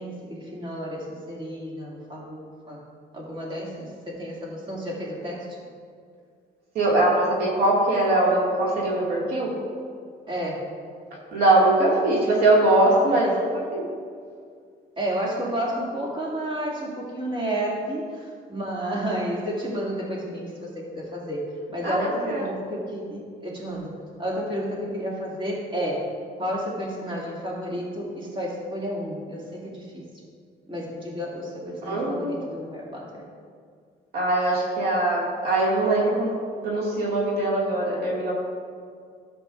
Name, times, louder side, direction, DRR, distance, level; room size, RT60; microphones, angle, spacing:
voice 1, 0.0-2.8 3.1-5.6 10.3-10.7 13.2-13.4 15.0-26.1 26.4-30.1 30.7-33.2, equal, 30° right, -4 dB, 2.3 m, -31 dB
voice 2, 6.7-9.6 11.3-13.9 21.8-22.4 31.8-32.4 34.1-36.3 36.6-38.3, right 2 dB, 65° right, -4 dB, 2.1 m, -22 dB
13.0 x 7.6 x 2.5 m, 2.2 s
cardioid pair, 110°, 17 cm